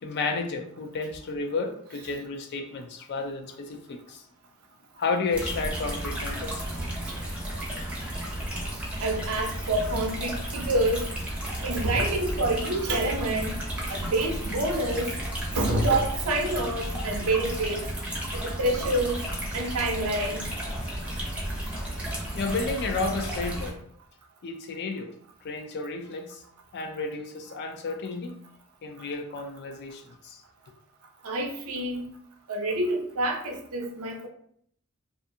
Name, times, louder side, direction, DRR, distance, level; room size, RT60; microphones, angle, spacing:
voice 1, 0.0-4.2 5.0-6.6 22.3-23.8 24.4-25.1 25.4-26.4 26.7-28.4 28.8-30.4, left 3 dB, 50° left, 6 dB, 0.4 m, -32 dB
sound 1, 5.3-23.7, right 1 dB, 5° right, 0.6 m, -33 dB
voice 2, 9.0-11.0 11.6-13.5 13.9-15.1 15.5-17.8 18.3-19.2 19.5-20.5 31.2-32.0 32.5-34.3, right 1 dB, 85° right, 2 dB, 0.6 m, -27 dB
2.5 x 2.4 x 2.6 m, 0.65 s
head